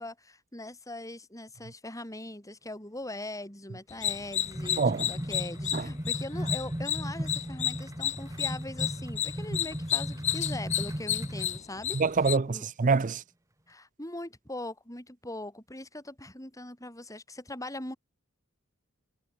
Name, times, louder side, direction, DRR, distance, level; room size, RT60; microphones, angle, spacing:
voice 1, 0.0-12.0 12.5-12.6 13.7-18.0, left 1 dB, 15° left, 7.3 m, -41 dB
sound 1, 3.9-12.4, left 10 dB, 35° left, 0.4 m, -31 dB
sound 2, 4.0-11.6, equal, 15° right, 2.2 m, -36 dB
voice 2, 4.8-5.1 5.7-5.8 11.9-13.2, right 4 dB, 35° right, 0.5 m, -25 dB
head